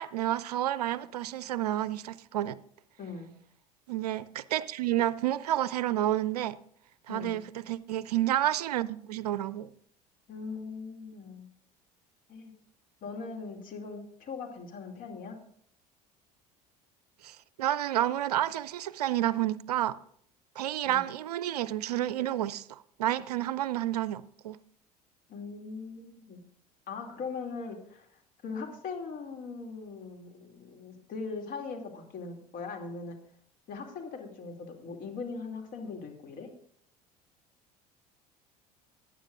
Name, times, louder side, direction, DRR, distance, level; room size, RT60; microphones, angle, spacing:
voice 1, 0.0-2.6 3.9-6.6 7.1-9.7 17.2-20.0 20.6-24.6, right 13 dB, 75° right, 0.5 m, -30 dB
voice 2, 3.0-3.3 7.1-7.4 10.3-11.5 12.3-12.5 13.0-15.4 20.8-21.0 25.3-26.4 26.9-33.2 33.7-36.5, left 4 dB, 45° left, 2.5 m, -40 dB
18.5 x 10.0 x 2.5 m
figure-of-eight pair, 65°, 20 cm